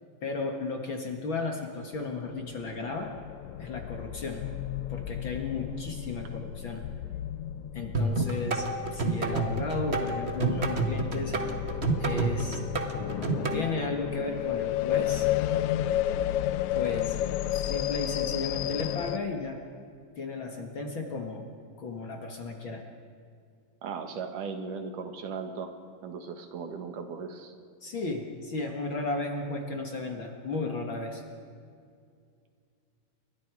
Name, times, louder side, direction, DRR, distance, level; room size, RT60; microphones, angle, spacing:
voice 1, 0.2-3.1 3.6-6.9 7.7-11.3 12.0-12.6 13.3-15.3 16.7-17.2 17.6-19.6 20.1-21.5 21.8-22.8 27.8-31.2, left 3 dB, 45° left, 2 dB, 2.0 m, -34 dB
sound 1, 2.3-19.2, left 12 dB, 75° left, 1.8 m, -32 dB
sound 2, 7.9-13.6, right 3 dB, 35° right, 1.0 m, -29 dB
voice 2, 23.8-25.7 26.0-27.5, right 5 dB, 75° right, 6 dB, 3.1 m, -37 dB
29.5 x 23.5 x 4.8 m, 2.3 s
omnidirectional pair, 3.7 m